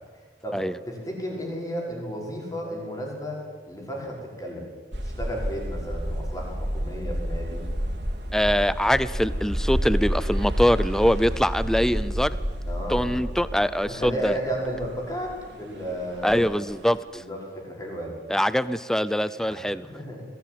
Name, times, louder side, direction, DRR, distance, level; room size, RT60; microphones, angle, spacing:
voice 1, 0.1-0.6 0.9-3.4 3.7-4.6 5.0-7.6 12.6-13.1 13.8-16.4 17.1-18.1 19.4-20.2, equal, 20° left, -1 dB, 5.6 m, -33 dB
sound 1, 4.9-17.0, equal, 85° right, 3.5 m, -30 dB
voice 2, 8.3-12.4 12.9-14.4 16.2-17.2 18.3-19.9, equal, 5° left, 16 dB, 0.6 m, -23 dB
21.0 x 16.0 x 9.4 m, 1.4 s
head